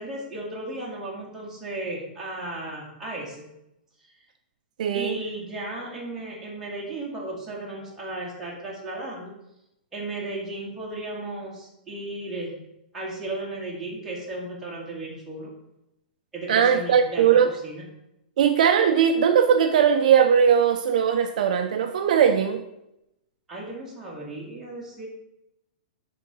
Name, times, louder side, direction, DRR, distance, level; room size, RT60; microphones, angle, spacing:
voice 1, 0.0-3.4 4.9-9.3 9.9-12.6 12.9-15.5 16.3-17.3 17.6-17.8 23.5-25.1, right 2 dB, 5° right, -6 dB, 1.9 m, -35 dB
voice 2, 4.8-5.2 16.5-17.5 18.4-22.6, right 8 dB, 50° right, 5 dB, 0.6 m, -19 dB
10.0 x 3.9 x 5.5 m, 0.86 s
hypercardioid pair, 170°, 5 cm